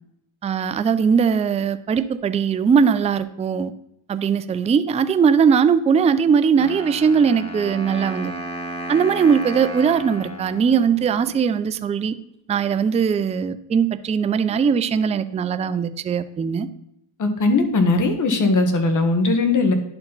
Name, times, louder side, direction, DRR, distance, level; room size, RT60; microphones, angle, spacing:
voice 1, 0.4-3.7 4.1-8.3 8.9-12.2 12.5-16.7, right 6 dB, 15° right, 12 dB, 0.3 m, -20 dB
Wind instrument woodwind instrument, 6.6-11.5, right 1 dB, 10° left, 1.8 m, -33 dB
voice 2, 17.2-19.7, left 3 dB, 40° left, 6 dB, 1.5 m, -19 dB
10.5 x 4.5 x 4.0 m, 0.79 s
supercardioid pair, 90°, 48 cm